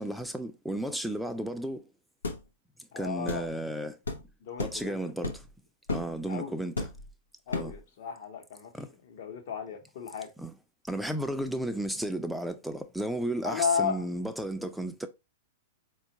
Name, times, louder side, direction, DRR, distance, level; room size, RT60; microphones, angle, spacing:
voice 1, 0.0-1.8 3.0-4.0 4.6-5.4 5.9-6.9 7.5-7.7 8.7-8.9 10.4-10.5 10.9-15.1, right 1 dB, ahead, 0.4 m, -33 dB
sound 1, 2.2-2.4 3.3-3.5 4.1-4.2 4.6-4.8 5.2-5.5 5.9-6.1 6.8-7.1 7.5-7.8, left 3 dB, 85° left, 0.6 m, -33 dB
voice 2, 2.9-3.5 4.4-5.0 6.3-6.6 7.5-8.7 9.0-10.3 13.4-14.0, left 6 dB, 60° left, 0.9 m, -33 dB
4.3 x 2.3 x 2.8 m
figure-of-eight pair, 105°, 0 cm